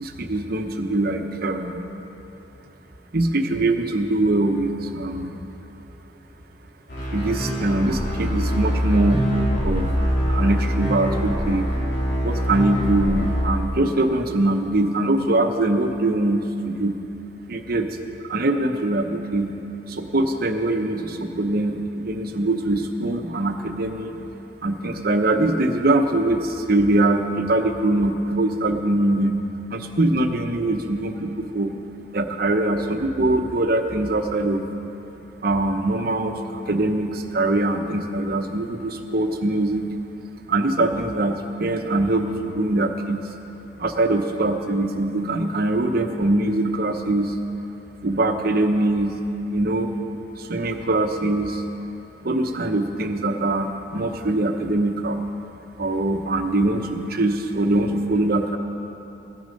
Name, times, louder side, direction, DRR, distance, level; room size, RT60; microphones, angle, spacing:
voice 1, 0.0-1.8 3.1-5.4 7.1-9.3 9.6-9.9 10.2-11.7 12.2-17.0 17.5-17.9 18.3-19.6 19.9-24.2 24.6-29.4 29.7-31.7 32.1-34.7 35.4-36.4 36.7-39.9 40.5-43.3 43.8-47.3 48.0-49.2 49.5-49.9 50.5-51.6 52.2-55.2 55.8-58.6, right 2 dB, 55° right, 5 dB, 0.9 m, -22 dB
sound 1, 6.9-13.9, equal, 75° left, 3.4 m, -24 dB
17.0 x 10.0 x 5.3 m, 3.0 s
head